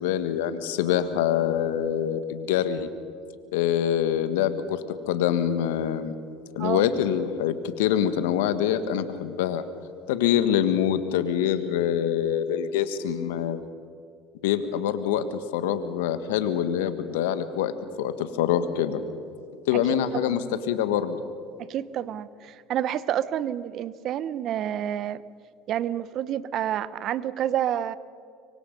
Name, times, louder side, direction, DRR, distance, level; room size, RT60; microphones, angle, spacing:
voice 1, 0.0-2.9 3.5-4.8 5.1-6.1 6.6-9.6 10.1-13.7 14.4-17.7 18.0-19.0 19.7-20.4 20.7-21.2, left 10 dB, 80° left, 11 dB, 1.4 m, -25 dB
voice 2, 19.7-20.5 21.6-25.2 25.7-27.9, right 11 dB, 55° right, 17 dB, 0.8 m, -29 dB
25.0 x 24.5 x 5.3 m, 2.3 s
hypercardioid pair, 75°, 0 cm